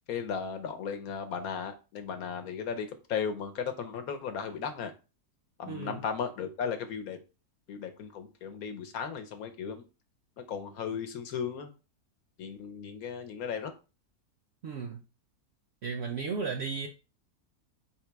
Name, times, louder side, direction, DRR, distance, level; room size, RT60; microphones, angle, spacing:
voice 1, 0.1-4.9 5.6-7.2 7.7-9.8 10.4-11.7 12.4-13.7, left 6 dB, 70° left, 1.1 m, -36 dB
voice 2, 5.7-6.0 14.6-15.0 15.8-16.9, right 5 dB, 60° right, 0.7 m, -34 dB
3.6 x 2.9 x 4.5 m
omnidirectional pair, 1.7 m